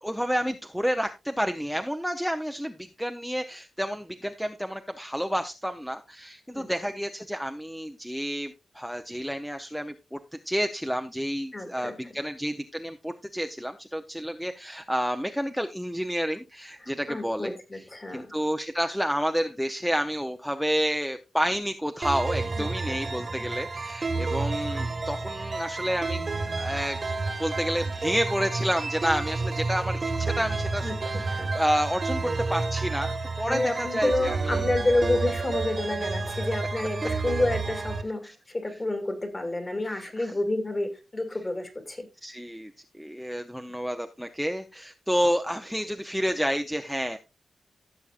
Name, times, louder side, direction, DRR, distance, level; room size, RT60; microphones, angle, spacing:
voice 1, 0.0-10.2 10.4-17.6 18.1-26.2 26.6-27.0 27.4-34.6 39.9-40.3 42.2-47.2, equal, ahead, 0.6 m, -30 dB
voice 2, 11.5-12.2 16.8-18.4 22.6-23.5 30.8-31.5 33.5-42.1, left 2 dB, 25° left, 2.2 m, -30 dB
sound 1, 22.0-38.0, right 3 dB, 35° right, 1.3 m, -30 dB
15.5 x 7.0 x 2.4 m
wide cardioid pair, 135°, 0 cm